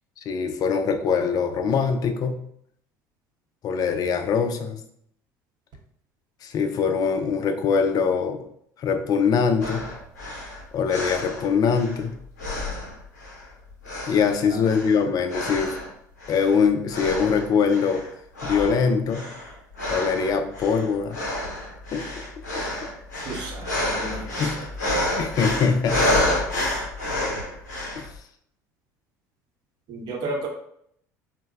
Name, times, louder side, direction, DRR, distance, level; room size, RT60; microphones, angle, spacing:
voice 1, 0.3-2.4 3.6-4.8 6.4-8.4 8.8-9.8 10.7-12.2 14.1-15.8 16.3-18.0 18.4-19.3 19.9-21.2 21.9-22.1 24.4-24.6 25.2-26.4 28.0-28.1, left 6 dB, 45° left, 8 dB, 0.4 m, -23 dB
sound 1, 9.6-12.1 12.4-13.5 13.8-15.9 16.2-16.6 16.9-18.1 18.4-28.1, left 1 dB, 85° left, 0.7 m, -29 dB
voice 2, 23.3-24.4 29.9-30.5, right 2 dB, 50° right, 1 dB, 0.7 m, -32 dB
3.8 x 2.1 x 2.3 m, 0.69 s
hypercardioid pair, 65°, 9 cm